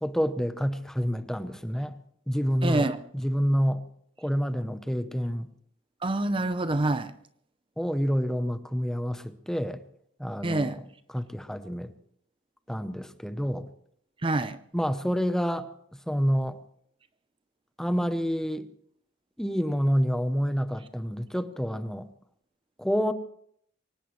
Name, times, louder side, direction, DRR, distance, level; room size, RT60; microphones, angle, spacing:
voice 1, 0.0-1.9 2.3-2.9 3.1-3.8 4.2-5.5 7.8-9.8 10.2-10.7 11.1-11.9 12.7-13.7 14.7-15.7 16.1-16.6 17.8-18.7 19.4-22.1 22.8-23.1, equal, 5° left, 0.8 m, -28 dB
voice 2, 2.6-3.0 6.0-7.1 10.4-10.8 14.2-14.6, right 2 dB, 25° right, 0.6 m, -26 dB
24.0 x 18.5 x 3.2 m
head